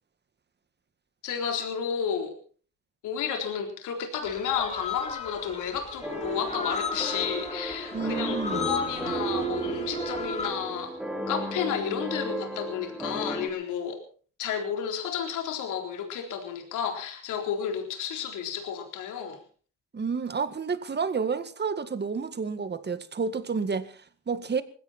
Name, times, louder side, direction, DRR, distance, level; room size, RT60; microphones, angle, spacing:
voice 1, 1.2-2.3 3.0-11.0 11.3-14.0 14.4-19.4, left 7 dB, 90° left, 3.9 m, -32 dB
sound 1, 4.2-10.5, left 5 dB, 20° left, 3.0 m, -36 dB
sound 2, 6.0-13.5, right 2 dB, 5° right, 4.0 m, -34 dB
voice 2, 7.9-8.7 19.9-24.6, right 5 dB, 35° right, 1.9 m, -30 dB
20.0 x 16.0 x 4.3 m
cardioid pair, 90°, 30 cm